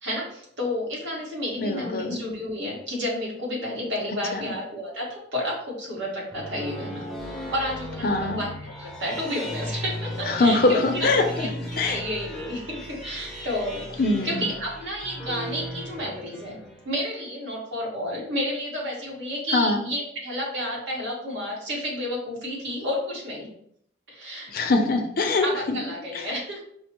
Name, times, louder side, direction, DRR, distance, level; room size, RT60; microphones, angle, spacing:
voice 1, 0.0-11.1 11.4-23.5 24.1-24.5 25.4-26.7, equal, 70° right, -4 dB, 1.3 m, -31 dB
voice 2, 1.6-2.2 4.3-4.5 8.0-8.4 10.3-11.5 11.8-12.0 14.0-14.5 19.5-19.8 24.5-25.8 26.1-26.3, left 2 dB, 50° left, 4 dB, 0.5 m, -23 dB
sound 1, 6.1-16.9, equal, ahead, 0.6 m, -36 dB
5.1 x 2.0 x 2.9 m, 0.70 s
head